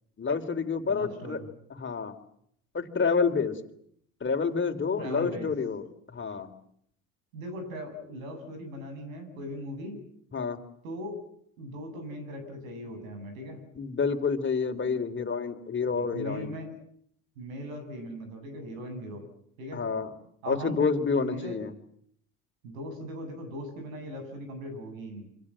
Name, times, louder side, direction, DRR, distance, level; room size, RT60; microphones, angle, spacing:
voice 1, 0.2-1.4 1.8-2.1 2.7-3.6 4.2-6.5 10.3-10.6 13.8-16.5 19.7-20.1 20.5-21.7, left 5 dB, 30° left, 7 dB, 3.6 m, -28 dB
voice 2, 0.9-1.5 5.0-5.5 7.3-10.0 10.8-11.2 11.6-13.6 15.8-16.7 17.4-19.2 19.6-19.8 20.4-20.8 21.1-21.6 22.6-25.3, equal, 85° right, 7 dB, 7.8 m, -39 dB
27.5 x 25.5 x 7.7 m, 0.69 s
hypercardioid pair, 65°, 39 cm